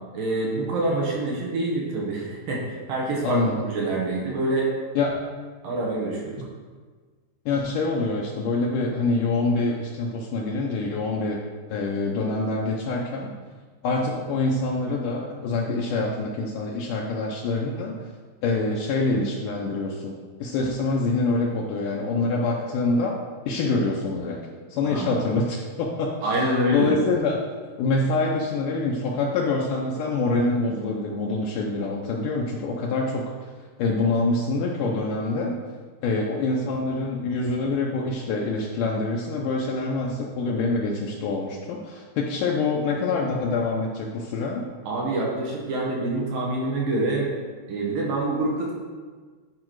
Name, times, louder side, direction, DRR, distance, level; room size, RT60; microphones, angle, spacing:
voice 1, 0.1-4.7 5.6-6.4 24.8-25.2 26.2-26.9 44.9-47.3 47.7-48.7, right 2 dB, 65° right, -3 dB, 2.8 m, -26 dB
voice 2, 3.2-3.5 5.0-5.2 7.5-11.4 11.7-13.3 13.8-17.9 18.4-23.2 23.5-24.4 24.7-26.4 26.7-27.4 27.8-33.3 33.8-35.6 36.0-44.7, left 3 dB, 85° left, -1 dB, 1.8 m, -25 dB
11.0 x 4.8 x 4.6 m, 1.5 s
omnidirectional pair, 4.7 m